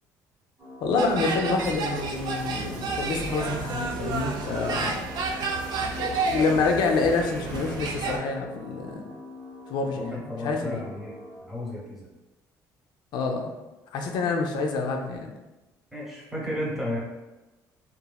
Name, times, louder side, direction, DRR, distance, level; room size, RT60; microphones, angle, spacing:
sound 1, 0.6-11.4, left 2 dB, 35° right, 0.9 m, -45 dB
voice 1, 0.8-5.0 6.0-9.0 9.7-10.9 13.1-13.5 13.9-15.3, left 4 dB, 70° left, 2 dB, 0.4 m, -27 dB
sound 2, 1.0-8.2, right 4 dB, 60° right, 0.4 m, -31 dB
sound 3, 2.0-8.1, left 2 dB, 10° left, 0.6 m, -42 dB
voice 2, 9.9-11.1 11.5-12.1 15.9-17.0, left 1 dB, 5° right, -5 dB, 0.9 m, -33 dB
2.9 x 2.5 x 2.2 m, 1.1 s
cardioid pair, 95°, 8 cm